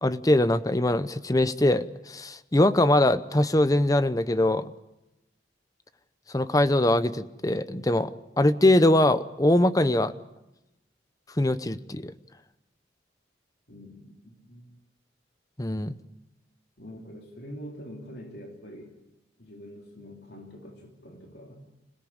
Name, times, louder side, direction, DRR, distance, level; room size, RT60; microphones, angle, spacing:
voice 1, 0.0-4.7 6.3-8.1 8.4-10.1 11.4-12.1 15.6-15.9, left 1 dB, 20° left, 13 dB, 0.7 m, -22 dB
voice 2, 13.7-14.7 16.8-18.9 19.4-21.7, equal, 65° left, 1 dB, 3.2 m, -44 dB
26.0 x 17.5 x 8.7 m, 0.94 s
head